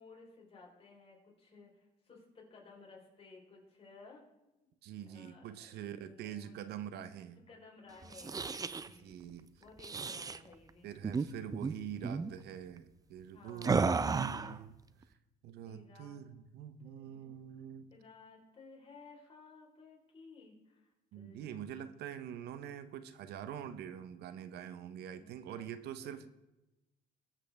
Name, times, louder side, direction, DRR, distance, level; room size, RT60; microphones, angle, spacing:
voice 1, 0.0-4.2 5.1-5.5 6.0-6.6 7.5-9.2 9.6-10.9 13.3-14.6 15.6-16.3 16.8-17.4 17.9-21.6 25.1-25.7, left 4 dB, 35° left, -1 dB, 4.1 m, -57 dB
voice 2, 4.8-7.4 9.0-9.5 10.8-14.7 15.4-17.9 21.1-26.3, right 9 dB, 75° right, 13 dB, 0.9 m, -45 dB
sound 1, 8.0-8.9 9.8-10.4 11.0-11.3 11.5-11.7 12.0-12.3 13.6-14.6, right 5 dB, 20° right, 0.5 m, -33 dB
21.0 x 7.8 x 3.5 m, 1.0 s
cardioid pair, 110°, 17 cm